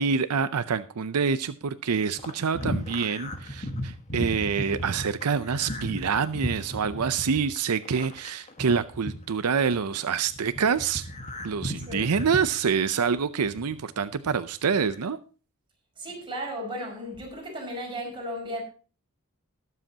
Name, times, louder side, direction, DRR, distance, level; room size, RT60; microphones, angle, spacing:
voice 1, 0.0-11.1 11.4-15.2, right 6 dB, 85° right, 0.6 m, -26 dB
sound 1, 2.2-9.9 10.3-13.8 14.1-15.0, equal, 30° left, 1.5 m, -35 dB
voice 2, 16.0-18.6, equal, 25° right, 5.6 m, -35 dB
19.5 x 7.7 x 2.8 m
head